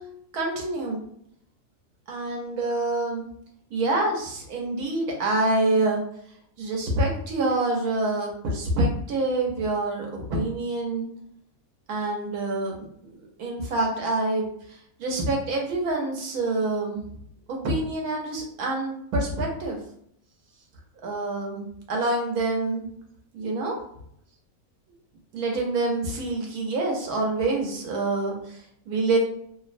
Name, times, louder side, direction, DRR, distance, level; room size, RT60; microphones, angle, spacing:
voice 1, 0.3-1.0 2.1-3.3 3.7-6.0 6.6-11.1 11.9-13.1 13.4-17.0 17.5-19.8 21.0-22.8 23.3-23.8 25.3-29.2, right 2 dB, 85° right, 0 dB, 1.2 m, -26 dB
2.9 x 2.0 x 2.5 m, 0.69 s
omnidirectional pair, 1.5 m